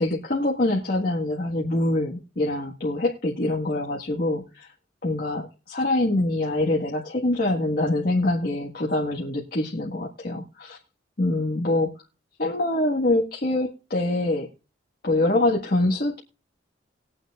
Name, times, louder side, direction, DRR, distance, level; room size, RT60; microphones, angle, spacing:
voice 1, 0.0-4.7 5.0-10.8 11.2-11.9 12.4-14.5 15.0-16.2, left 2 dB, 50° left, -2 dB, 1.6 m, -24 dB
20.5 x 8.9 x 2.4 m, 0.32 s
head